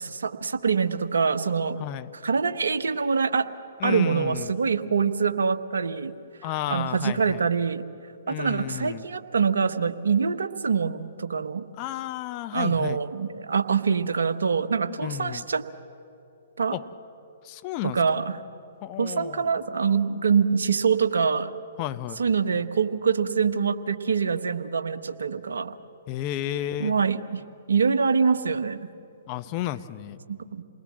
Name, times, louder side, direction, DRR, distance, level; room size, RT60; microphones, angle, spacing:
voice 1, 0.0-1.8 2.2-3.5 3.8-6.1 6.7-7.8 8.3-11.7 12.5-15.6 16.6-16.8 17.8-18.4 19.0-21.5 22.2-25.7 26.8-27.4 27.7-28.9 30.3-30.6, right 6 dB, 75° right, 8 dB, 1.1 m, -25 dB
voice 2, 1.8-2.1 3.8-4.6 6.4-7.5 8.3-9.1 11.7-13.0 15.0-15.5 16.7-16.8 17.4-18.0 18.8-19.6 21.8-22.2 26.1-27.0 29.3-30.2, left 13 dB, 35° left, 11 dB, 0.9 m, -32 dB
28.0 x 20.0 x 7.6 m, 2.6 s
figure-of-eight pair, 125°, 0 cm